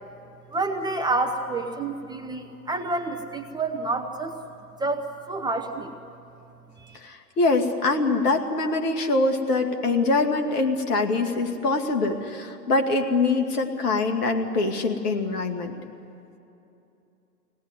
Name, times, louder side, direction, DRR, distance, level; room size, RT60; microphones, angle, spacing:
voice 1, 0.5-4.4 4.8-5.9 6.8-7.0, right 3 dB, 10° right, 4 dB, 0.8 m, -28 dB
voice 2, 7.0-15.7, left 3 dB, 65° left, 4 dB, 2.6 m, -24 dB
24.5 x 18.0 x 9.8 m, 2.8 s
hypercardioid pair, 115°, 49 cm